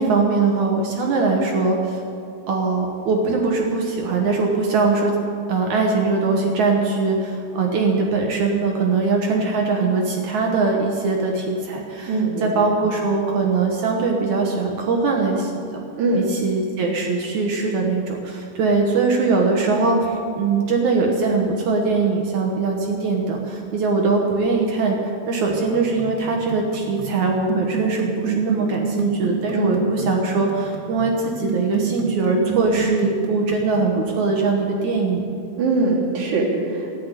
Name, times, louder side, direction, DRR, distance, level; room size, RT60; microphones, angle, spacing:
voice 1, 0.0-2.0 2.5-5.1 5.5-15.8 16.1-35.2, right 3 dB, 60° right, 0 dB, 2.1 m, -21 dB
voice 2, 12.1-12.7 16.0-16.2 29.5-29.8 35.6-37.0, right 2 dB, 45° right, -4 dB, 3.9 m, -22 dB
sound 1, 25.5-34.0, right 8 dB, 80° right, 3.0 m, -29 dB
14.0 x 9.7 x 9.8 m, 2.5 s
omnidirectional pair, 4.9 m